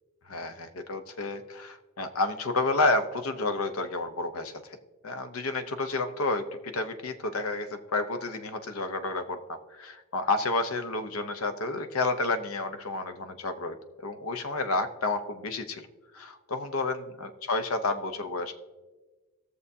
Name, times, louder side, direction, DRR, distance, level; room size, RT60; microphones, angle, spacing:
voice 1, 0.3-4.8 5.0-13.8 14.0-15.9 16.1-18.5, left 3 dB, 80° left, 8 dB, 0.8 m, -30 dB
19.5 x 6.7 x 2.7 m, 1.2 s
head